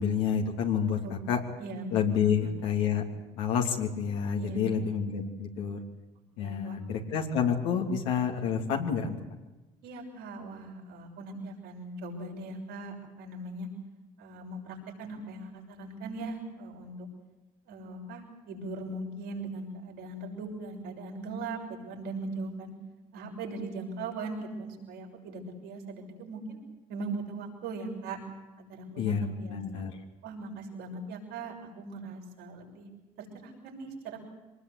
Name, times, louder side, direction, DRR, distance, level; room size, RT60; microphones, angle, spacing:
voice 1, 0.0-1.4 1.9-3.0 3.3-5.8 6.4-9.2 29.0-29.9, left 7 dB, 80° left, 1 dB, 3.1 m, -29 dB
voice 2, 1.6-2.5 4.3-4.9 6.4-6.8 9.8-13.7 14.2-17.1 17.7-22.7 23.1-26.6 26.9-28.2 28.6-29.8 30.2-32.9 33.2-34.2, right 2 dB, 75° right, 0 dB, 6.4 m, -40 dB
25.0 x 20.0 x 8.1 m, 1.1 s
hypercardioid pair, 55°, 18 cm